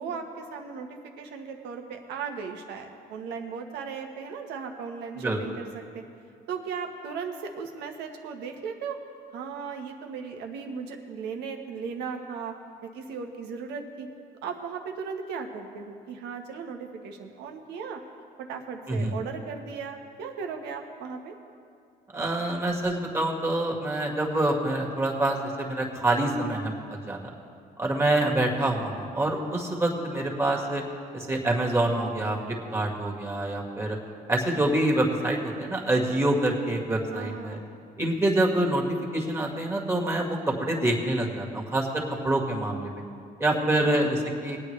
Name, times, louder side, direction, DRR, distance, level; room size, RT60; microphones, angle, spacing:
voice 1, 0.0-6.0 6.5-9.0 9.3-12.5 12.8-14.1 14.4-18.0 18.4-21.3 37.1-37.8 43.5-44.2, right 5 dB, 85° right, 3 dB, 1.3 m, -37 dB
voice 2, 22.1-27.3 27.8-30.8 31.1-34.0 34.3-37.6 38.0-43.0 43.4-44.6, right 1 dB, 15° right, -1 dB, 1.9 m, -26 dB
21.0 x 8.8 x 3.3 m, 2.4 s
cardioid pair, 110°, 17 cm